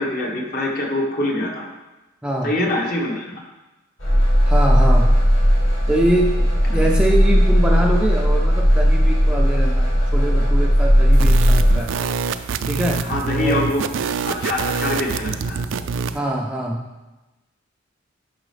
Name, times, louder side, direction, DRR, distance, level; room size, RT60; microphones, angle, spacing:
voice 1, 0.0-1.7 2.4-3.3 6.7-6.8 13.0-13.8 14.2-15.6, left 1 dB, 45° left, -1 dB, 1.3 m, -24 dB
voice 2, 2.2-2.6 4.5-5.1 5.9-6.4 6.7-11.9 12.7-13.1 13.4-13.6 16.1-16.8, right 1 dB, 5° right, -1 dB, 0.4 m, -23 dB
sound 1, 4.0-11.8, equal, 70° left, 2.6 m, -16 dB
sound 2, 11.1-16.2, right 5 dB, 70° right, 0.4 m, -25 dB
9.9 x 5.5 x 3.3 m, 1.1 s
head